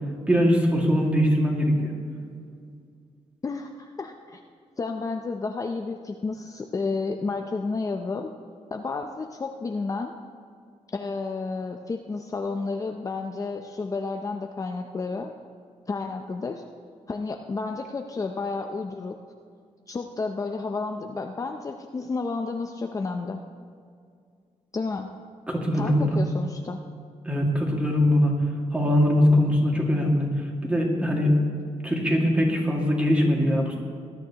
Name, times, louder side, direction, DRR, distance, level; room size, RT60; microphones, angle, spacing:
voice 1, 0.3-1.9 25.5-26.2 27.3-28.3 28.7-30.3 30.6-31.3 31.8-33.7, equal, 10° right, -1 dB, 2.0 m, -21 dB
voice 2, 3.4-4.4 4.8-8.3 8.7-10.1 10.9-15.3 15.9-16.6 17.1-19.2 19.9-23.4 24.7-25.1 25.7-26.8, left 4 dB, 30° left, 4 dB, 0.5 m, -31 dB
19.5 x 11.5 x 2.9 m, 2.2 s
wide cardioid pair, 135°, 12 cm